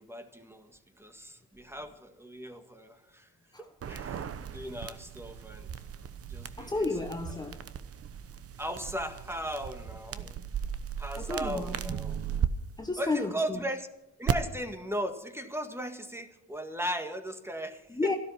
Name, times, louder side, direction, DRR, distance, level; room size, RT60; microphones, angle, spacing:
voice 1, 0.0-3.3 3.6-5.7 6.3-6.8 8.6-10.4 11.0-12.2 13.0-13.9 14.2-18.1, equal, 10° right, 1.8 m, -37 dB
sound 1, 3.8-12.5 14.3-14.4, right 9 dB, 50° right, 1.0 m, -36 dB
voice 2, 6.6-7.6 11.2-12.0 12.8-13.6 17.9-18.2, left 3 dB, 15° left, 1.2 m, -32 dB
13.5 x 12.5 x 5.9 m
cardioid pair, 90°, 30 cm